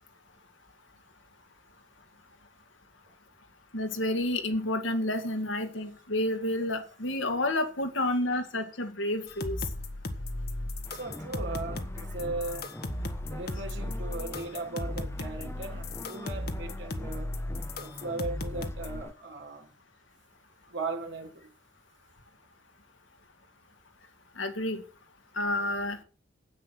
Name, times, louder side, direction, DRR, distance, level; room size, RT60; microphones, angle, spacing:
voice 1, 3.7-9.6 24.4-24.8 25.4-26.0, left 1 dB, 70° left, 1.9 m, -30 dB
sound 1, 9.3-19.0, left 1 dB, 50° left, 1.4 m, -36 dB
sound 2, 10.8-19.1, left 1 dB, 10° left, 0.7 m, -45 dB
voice 2, 10.9-12.7 13.3-17.3 17.8-19.7 20.7-21.5, right 3 dB, 65° right, 3.0 m, -38 dB
9.9 x 8.7 x 6.0 m
head